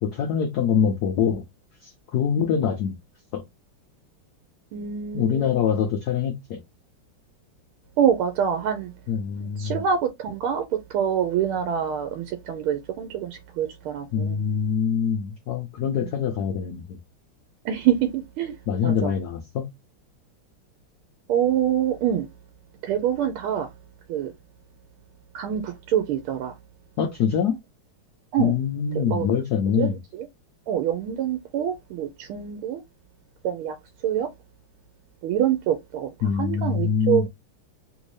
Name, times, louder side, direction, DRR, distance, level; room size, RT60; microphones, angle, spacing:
voice 1, 0.0-1.4 1.8-3.0 3.3-3.4 5.1-6.6 9.1-9.8 14.1-17.0 18.7-19.6 27.0-27.6 28.4-30.0 36.2-37.3, left 7 dB, 80° left, 0.9 m, -24 dB
voice 2, 4.7-5.8 8.0-8.9 9.6-14.4 17.6-18.5 18.8-19.1 21.3-22.3 22.8-23.7 24.1-24.3 25.3-26.5 28.3-28.5 28.9-29.3 29.8-29.9 30.7-32.8 33.4-33.7 34.0-34.3 35.2-36.1 36.4-37.3, right 9 dB, 85° right, 1.5 m, -25 dB
3.5 x 2.6 x 3.1 m
omnidirectional pair, 2.3 m